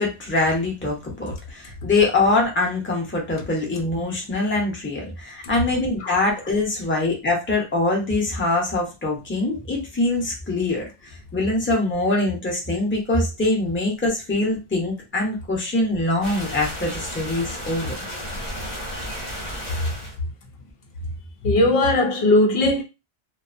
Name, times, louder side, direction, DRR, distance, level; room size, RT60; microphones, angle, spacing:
voice 1, 0.0-10.8 11.3-17.9, left 2 dB, 15° left, 0.6 m, -23 dB
sound 1, 16.2-20.2, equal, 45° left, 1.0 m, -33 dB
voice 2, 21.4-22.8, left 1 dB, 70° left, 0.8 m, -18 dB
2.5 x 2.2 x 2.5 m
omnidirectional pair, 1.1 m